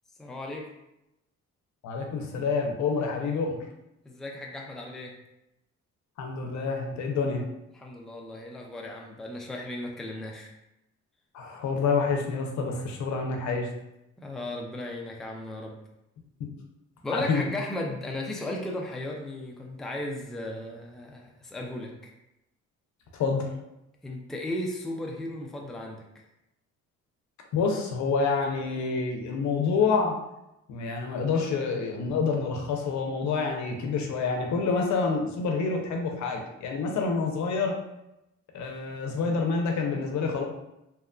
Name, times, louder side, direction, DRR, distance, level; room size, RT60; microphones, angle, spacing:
voice 1, 0.2-0.7 4.1-5.1 7.7-10.5 14.2-15.8 17.0-22.1 24.0-26.0, left 1 dB, ahead, -1 dB, 0.4 m, -35 dB
voice 2, 1.8-3.6 6.2-7.4 11.3-13.7 16.4-16.5 17.1-17.5 23.1-23.5 27.5-30.2 30.7-37.8 38.5-40.4, left 4 dB, 70° left, 2 dB, 0.6 m, -27 dB
2.9 x 2.3 x 2.2 m, 0.88 s
cardioid pair, 90°, 30 cm